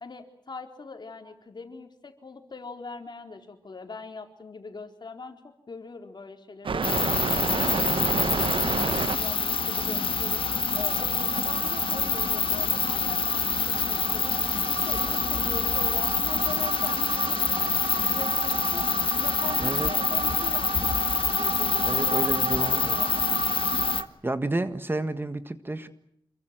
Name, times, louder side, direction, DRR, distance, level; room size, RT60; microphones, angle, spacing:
voice 1, 0.0-10.4 10.7-18.9 19.1-23.4 23.7-24.0, left 4 dB, 55° left, 5 dB, 4.2 m, -42 dB
sound 1, 6.6-24.1, right 5 dB, 75° right, 1.0 m, -32 dB
sound 2, 6.8-24.0, left 5 dB, 85° left, 1.7 m, -26 dB
voice 2, 19.6-19.9 21.8-22.9 24.2-25.9, right 2 dB, 25° right, 10 dB, 1.6 m, -30 dB
28.0 x 22.5 x 7.7 m, 0.73 s
wide cardioid pair, 115°, 9 cm